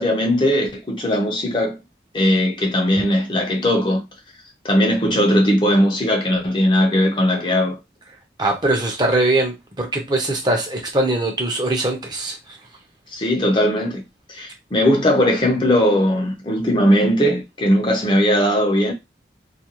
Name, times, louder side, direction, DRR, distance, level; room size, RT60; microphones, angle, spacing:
voice 1, 0.0-1.8 2.1-4.0 4.6-7.8 13.1-14.0 14.3-18.9, equal, 30° left, 0.5 m, -18 dB
voice 2, 8.4-12.4, right 2 dB, 25° right, 0.6 m, -21 dB
2.3 x 2.3 x 2.9 m
head